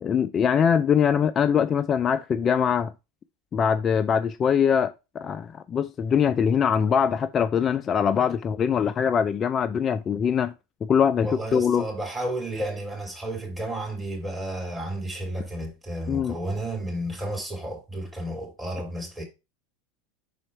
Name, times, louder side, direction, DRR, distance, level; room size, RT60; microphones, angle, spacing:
voice 1, 0.0-2.9 3.5-10.5 10.8-11.9 16.1-16.4, left 7 dB, 30° left, 0.3 m, -23 dB
voice 2, 11.2-19.2, right 1 dB, 15° right, 2.9 m, -32 dB
5.6 x 4.2 x 4.3 m
figure-of-eight pair, 85°, 0 cm